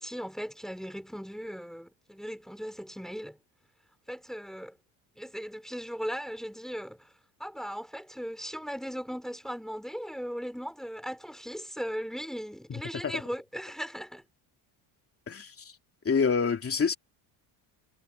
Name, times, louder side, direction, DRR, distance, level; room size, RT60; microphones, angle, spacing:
voice 1, 0.0-3.4 4.1-4.8 5.2-7.1 7.4-14.2, equal, ahead, 4.6 m, -38 dB
voice 2, 15.3-15.7 16.0-16.9, left 5 dB, 25° left, 3.0 m, -27 dB
cardioid pair, 135°, 49 cm